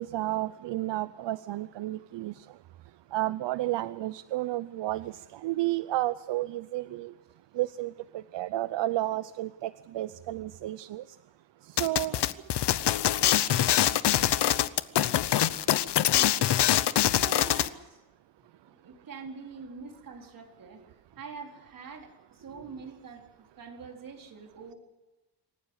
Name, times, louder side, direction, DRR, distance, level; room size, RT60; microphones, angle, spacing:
voice 1, 0.0-2.4 3.1-7.1 7.5-11.0 11.7-12.2, right 15 dB, 80° right, 15 dB, 0.7 m, -32 dB
sound 1, 11.8-17.7, left 12 dB, 70° left, 0.9 m, -24 dB
voice 2, 16.1-16.5 17.1-18.0 18.7-24.8, right 5 dB, 50° right, 2 dB, 4.3 m, -45 dB
26.5 x 14.5 x 8.0 m, 1.1 s
wide cardioid pair, 150°, 42 cm